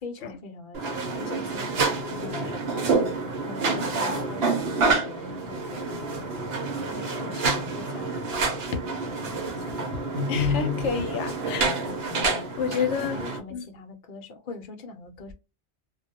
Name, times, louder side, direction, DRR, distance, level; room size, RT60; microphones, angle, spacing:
voice 1, 0.0-2.8 3.4-8.8 9.2-9.7 12.8-15.3, left 3 dB, 55° left, 0.7 m, -42 dB
sound 1, 0.7-13.4, right 3 dB, 65° right, 0.9 m, -28 dB
voice 2, 10.3-11.7 12.6-13.2 13.5-13.6, left 6 dB, 85° left, 0.9 m, -29 dB
2.2 x 2.1 x 2.7 m
omnidirectional pair, 1.2 m